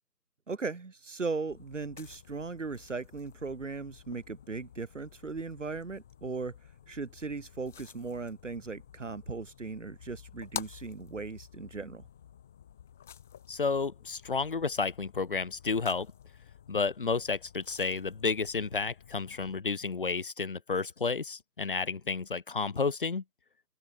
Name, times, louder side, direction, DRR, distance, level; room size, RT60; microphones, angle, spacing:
voice 1, 0.5-6.6 6.9-12.1, right 4 dB, 45° right, 7.6 m, -38 dB
sound 1, 1.5-19.6, left 9 dB, ahead, 1.3 m, -50 dB
voice 2, 13.5-16.1 16.7-23.2, left 4 dB, 30° left, 2.2 m, -31 dB
open air
figure-of-eight pair, 160°, 49 cm